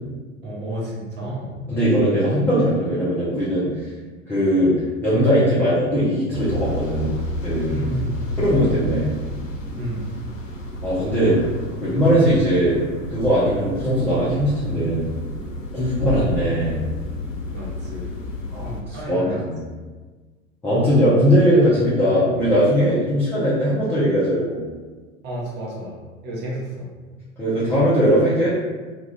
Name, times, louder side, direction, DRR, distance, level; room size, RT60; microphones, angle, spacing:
voice 1, 0.4-1.5 7.7-8.3 9.7-10.1 15.9-16.3 17.5-18.1 18.6-19.4 22.8-22.9 25.2-26.0 26.2-26.9, right 1 dB, 25° right, -5 dB, 0.7 m, -31 dB
voice 2, 1.7-3.7 4.3-4.7 5.0-7.1 7.4-7.8 8.4-9.1 10.8-11.4 11.8-12.8 13.1-15.0 15.7-16.8 18.5-19.5 20.6-24.6 27.4-28.5, equal, 5° left, -11 dB, 0.4 m, -19 dB
sound 1, 6.3-18.8, equal, 70° left, 0.6 m, -31 dB
2.3 x 2.3 x 3.1 m, 1.4 s
figure-of-eight pair, 90°, 40 cm